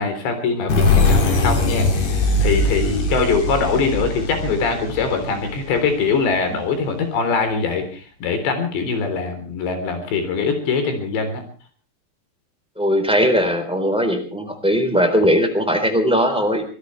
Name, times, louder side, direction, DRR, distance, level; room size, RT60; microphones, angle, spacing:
voice 1, 0.0-11.4, left 5 dB, 85° left, 7 dB, 5.9 m, -22 dB
sound 1, 0.7-6.2, left 2 dB, 45° left, 3.6 m, -20 dB
voice 2, 12.7-16.6, equal, ahead, 6 dB, 3.2 m, -19 dB
24.5 x 17.5 x 3.3 m, 0.41 s
omnidirectional pair, 4.9 m